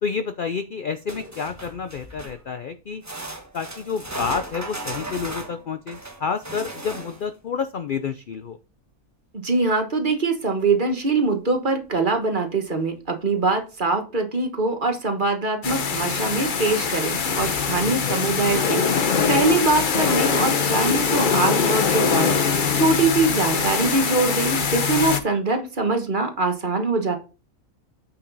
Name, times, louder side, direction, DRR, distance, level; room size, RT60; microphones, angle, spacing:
voice 1, 0.0-3.0 3.5-8.6 17.9-18.2, left 6 dB, 60° left, 9 dB, 0.5 m, -29 dB
sound 1, 1.1-2.5 3.0-7.4 10.6-10.7 11.1-11.2 11.9-12.0, right 2 dB, 10° right, 1.1 m, -36 dB
voice 2, 9.3-22.3 22.7-27.2, right 3 dB, 35° right, 5 dB, 1.4 m, -23 dB
sound 2, 15.6-25.2, left 5 dB, 40° left, 0.8 m, -22 dB
8.5 x 5.6 x 4.0 m, 0.32 s
omnidirectional pair, 1.6 m